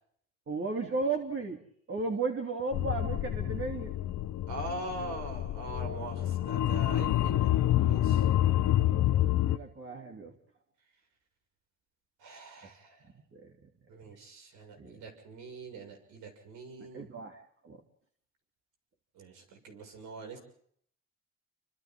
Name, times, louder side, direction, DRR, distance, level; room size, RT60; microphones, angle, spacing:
voice 1, 0.5-1.6 1.9-3.9 9.2-10.3 13.3-13.5 14.8-15.0 16.8-17.8, right 3 dB, 45° right, 1 dB, 3.3 m, -35 dB
sound 1, 2.7-9.6, left 13 dB, 75° left, 1.0 m, -28 dB
voice 2, 4.5-7.5 7.8-8.2 12.2-13.1 13.9-17.1 19.1-20.4, right 2 dB, 90° right, 3 dB, 6.6 m, -43 dB
29.0 x 25.5 x 3.8 m, 0.65 s
cardioid pair, 90°, 30 cm